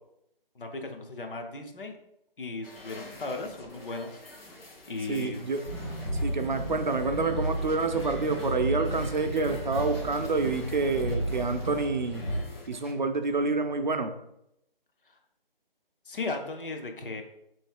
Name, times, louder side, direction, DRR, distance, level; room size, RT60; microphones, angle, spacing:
voice 1, 0.5-2.0 2.4-4.2 4.9-5.5 15.1-15.2 16.1-17.2, left 3 dB, 60° left, 4 dB, 0.8 m, -36 dB
sound 1, 2.6-12.9, left 2 dB, 80° left, 1.4 m, -49 dB
voice 2, 5.1-5.6 6.2-12.2 12.7-14.1, right 3 dB, 55° right, 7 dB, 0.5 m, -28 dB
sound 2, 5.6-12.4, right 1 dB, 30° left, 0.6 m, -33 dB
3.1 x 3.1 x 4.6 m, 0.80 s
figure-of-eight pair, 165°, 29 cm